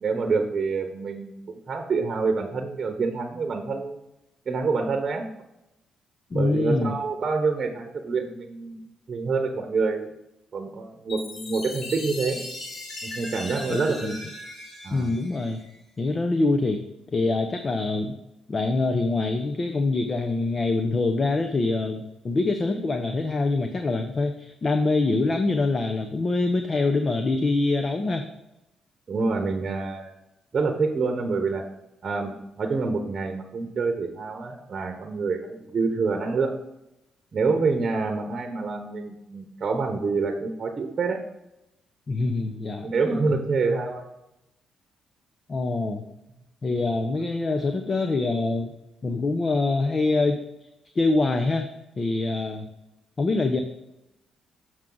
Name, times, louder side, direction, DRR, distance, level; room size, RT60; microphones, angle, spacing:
voice 1, 0.0-4.0 4.5-5.3 6.3-8.8 9.1-10.1 10.5-12.4 13.0-14.1 14.8-15.1 29.1-30.1 30.5-31.6 32.0-36.5 37.3-41.2 42.8-44.1, right 4 dB, 40° right, 4 dB, 1.0 m, -27 dB
voice 2, 6.3-6.9 13.7-14.2 14.9-15.6 16.0-16.8 17.1-18.2 18.5-28.2 42.1-42.9 45.5-46.0 46.6-48.7 49.0-50.4 50.9-51.7 52.0-52.7 53.2-53.6, left 3 dB, 35° left, 6 dB, 0.8 m, -24 dB
Chime, 11.1-15.8, left 1 dB, 50° left, 2.6 m, -38 dB
7.2 x 6.3 x 3.9 m, 0.89 s
cardioid pair, 90°, 0 cm